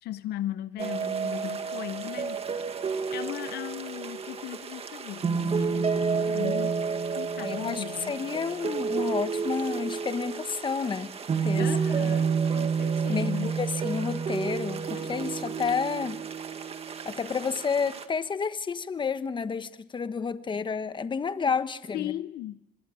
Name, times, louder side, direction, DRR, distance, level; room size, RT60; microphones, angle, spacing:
voice 1, 0.0-2.4 3.1-5.9 6.3-6.7 7.1-8.2 11.6-13.5 21.9-22.6, left 13 dB, 75° left, 0.8 m, -37 dB
sound 1, 0.8-18.0, right 5 dB, 35° right, 1.9 m, -30 dB
voice 2, 7.4-11.2 11.4-11.7 12.0-12.2 13.1-16.2 17.0-22.1, left 5 dB, 30° left, 1.2 m, -30 dB
26.0 x 20.5 x 7.7 m
cardioid pair, 110°, 17 cm